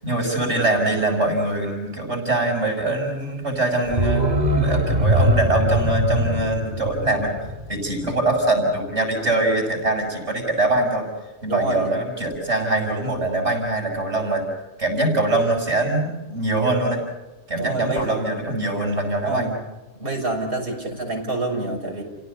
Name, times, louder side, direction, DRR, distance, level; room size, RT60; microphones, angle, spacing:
voice 1, 0.0-11.0 11.4-14.4 14.8-17.0 17.5-19.5, right 2 dB, 75° right, 2 dB, 7.1 m, -23 dB
sound 1, 3.9-8.6 8.9-9.0, equal, 35° right, 2.6 m, -22 dB
voice 2, 11.5-11.9 17.6-18.2 19.2-19.5 20.0-22.0, right 2 dB, 55° right, -3 dB, 7.0 m, -27 dB
30.0 x 17.5 x 7.0 m, 1.1 s
omnidirectional pair, 1.2 m